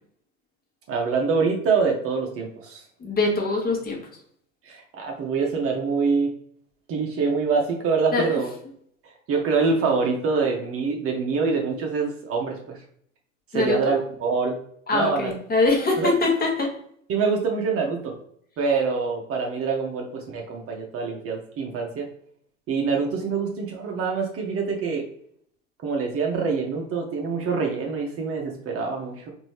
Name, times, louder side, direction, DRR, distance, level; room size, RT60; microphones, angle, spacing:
voice 1, 0.9-2.8 4.6-6.3 6.9-8.5 9.3-12.8 13.5-14.6 14.9-15.3 16.0-16.1 17.1-18.1 18.6-22.1 22.7-25.0 25.8-29.3, right 4 dB, 35° right, 1 dB, 0.8 m, -25 dB
voice 2, 3.0-4.0 8.1-8.4 13.5-13.8 14.9-16.7, left 3 dB, 20° left, 0 dB, 1.1 m, -23 dB
4.0 x 2.7 x 3.1 m, 0.66 s
hypercardioid pair, 85°, 40 cm